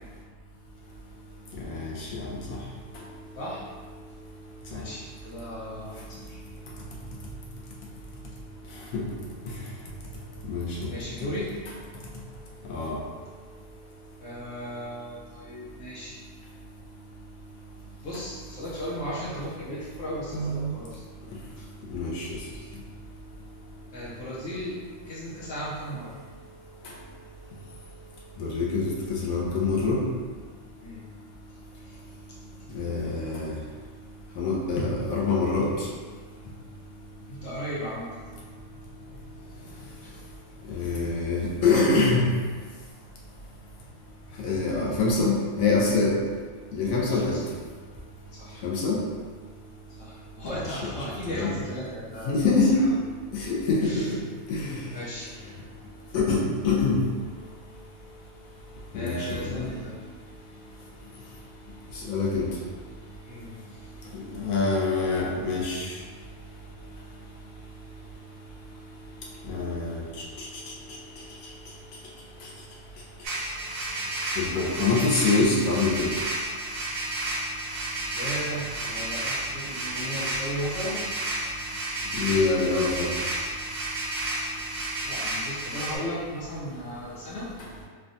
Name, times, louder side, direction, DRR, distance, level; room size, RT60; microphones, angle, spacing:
voice 1, 1.7-2.3 4.7-4.8 8.9-9.0 10.5-10.9 12.7-13.0 20.3-20.7 21.9-22.3 28.4-30.0 32.7-33.5 34.4-35.7 40.7-42.3 44.4-46.2 46.7-47.4 48.6-49.0 50.6-50.9 51.3-51.5 52.3-52.8 53.3-54.1 54.5-54.8 56.1-57.0 58.9-59.7 62.1-62.5 64.4-65.9 69.5-70.0 70.4-70.5 74.4-76.1 82.2-83.1, left 3 dB, 90° left, -3 dB, 1.1 m, -25 dB
voice 2, 3.3-3.6 4.7-6.4 10.9-11.5 14.2-16.2 18.0-21.0 21.6-21.7 23.9-24.8 25.1-26.2 30.8-31.1 31.5-32.0 32.5-32.7 37.3-38.2 40.0-40.2 40.6-40.7 47.1-47.4 48.3-48.6 50.0-52.9 53.8-54.1 54.9-55.2 58.9-60.0 63.2-63.8 78.1-81.0 85.0-87.5, equal, 70° left, -7 dB, 1.1 m, -36 dB
sound 1, 73.2-86.0, right 1 dB, 85° right, 1.1 m, -32 dB
3.4 x 2.2 x 2.5 m, 1.5 s
omnidirectional pair, 1.4 m